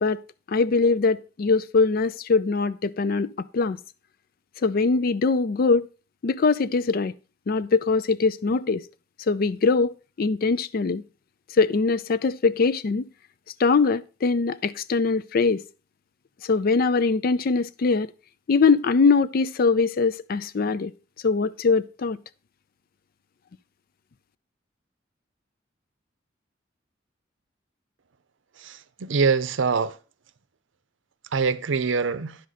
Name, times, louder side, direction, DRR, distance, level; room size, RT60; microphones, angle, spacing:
voice 1, 0.5-3.8 4.6-5.9 6.2-7.1 7.5-8.8 9.3-11.0 11.6-13.1 13.6-15.6 16.4-18.1 18.5-20.9 21.2-22.2, left 4 dB, 50° left, 0.4 m, -22 dB
voice 2, 28.6-30.0 31.3-32.4, right 5 dB, 80° right, 0.6 m, -24 dB
10.0 x 6.3 x 4.1 m
head